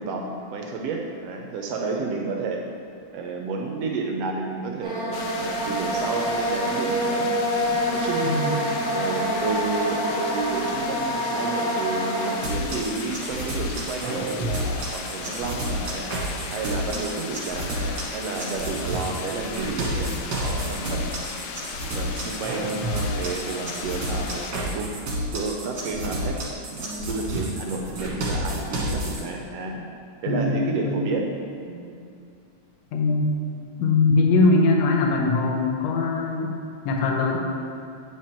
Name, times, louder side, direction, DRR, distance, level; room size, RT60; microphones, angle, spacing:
voice 1, 0.0-2.6 3.1-8.3 8.9-16.1 16.5-21.2 21.9-24.9 25.3-26.4 26.7-29.8 30.2-31.3 31.7-32.0, right 3 dB, 80° right, 1 dB, 1.4 m, -31 dB
sound 1, 4.8-12.4, equal, 5° right, 1.1 m, -26 dB
sound 2, 5.1-24.5, left 6 dB, 90° left, 2.0 m, -37 dB
sound 3, 12.4-29.2, right 1 dB, 45° right, 1.5 m, -30 dB
voice 2, 30.3-30.6 30.8-31.0 32.9-33.3 33.8-36.5 36.9-37.4, left 3 dB, 75° left, 1 dB, 1.9 m, -21 dB
8.7 x 5.0 x 4.3 m, 2.5 s
omnidirectional pair, 3.3 m